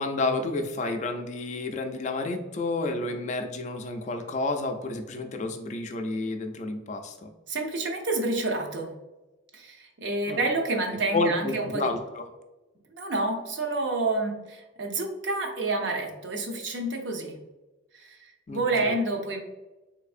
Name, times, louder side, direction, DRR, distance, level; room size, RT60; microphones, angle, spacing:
voice 1, 0.0-7.3 10.3-10.4 11.1-12.3 18.5-18.9, left 2 dB, 35° left, 5 dB, 0.3 m, -30 dB
voice 2, 7.5-8.9 9.5-11.9 13.0-17.4 17.9-18.2 18.5-19.4, right 2 dB, 70° right, 2 dB, 0.6 m, -29 dB
3.3 x 3.2 x 2.4 m, 1.1 s
head